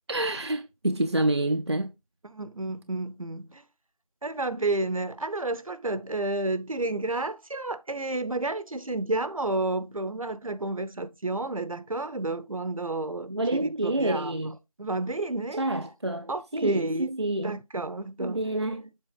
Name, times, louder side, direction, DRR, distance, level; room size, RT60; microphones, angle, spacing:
voice 1, 0.1-1.9 13.3-14.6 15.6-17.6 18.2-18.9, right 1 dB, 45° right, 0.4 m, -28 dB
voice 2, 2.3-3.6 4.2-14.3 14.8-15.6 16.3-17.1 17.4-18.5, right 2 dB, 65° right, 0.8 m, -31 dB
7.5 x 4.0 x 4.7 m
figure-of-eight pair, 175°, 19 cm